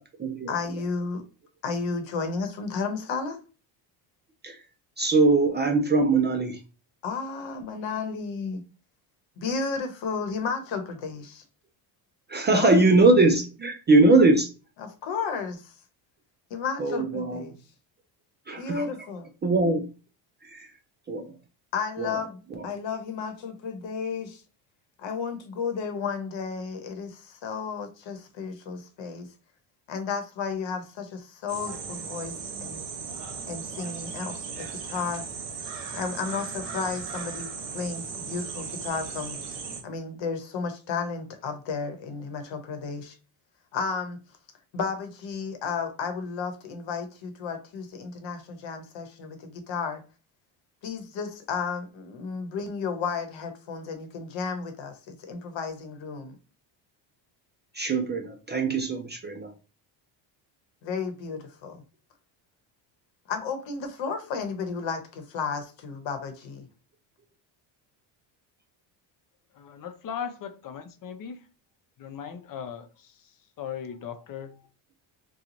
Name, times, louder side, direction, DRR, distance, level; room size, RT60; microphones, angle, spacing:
voice 1, 0.5-1.2 1.6-3.4 7.0-8.6 9.4-11.4 12.5-12.7 14.8-15.8 16.5-17.5 18.6-19.3 21.7-24.4 25.0-29.3 29.9-32.4 32.6-32.8 33.5-35.2 35.9-39.4 39.8-43.2 43.7-44.2 44.7-50.0 50.8-56.4 60.8-61.8 63.3-66.7, left 5 dB, 65° left, 1.0 m, -33 dB
voice 2, 5.0-6.6 12.3-14.5 16.8-17.4 18.5-18.9 19.4-19.8 20.4-20.7 21.1-21.3 22.0-22.2 22.6-22.7 57.7-59.5, right 2 dB, 25° right, 0.4 m, -21 dB
sound 1, 31.5-39.8, right 5 dB, 60° right, 1.1 m, -37 dB
voice 3, 69.6-70.5 71.0-71.4 72.0-72.9 73.6-74.5, left 8 dB, 40° left, 0.6 m, -37 dB
3.0 x 2.3 x 3.8 m
cardioid pair, 105°, 49 cm